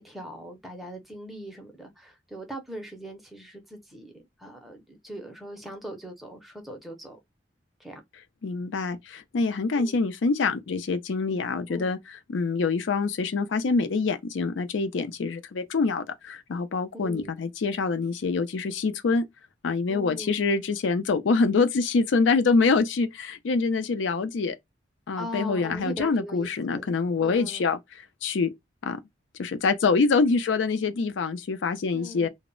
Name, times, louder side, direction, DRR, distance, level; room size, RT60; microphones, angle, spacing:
voice 1, 0.0-7.2 7.8-8.0 9.7-10.0 11.7-11.8 16.9-17.4 19.9-20.3 25.2-26.9 27.2-27.7 31.9-32.3, right 1 dB, ahead, 0.5 m, -40 dB
voice 2, 8.4-12.0 12.3-19.2 19.6-24.6 25.1-27.8 28.2-28.5 28.8-29.0 29.4-32.3, left 4 dB, 85° left, 0.4 m, -25 dB
2.0 x 2.0 x 3.6 m
head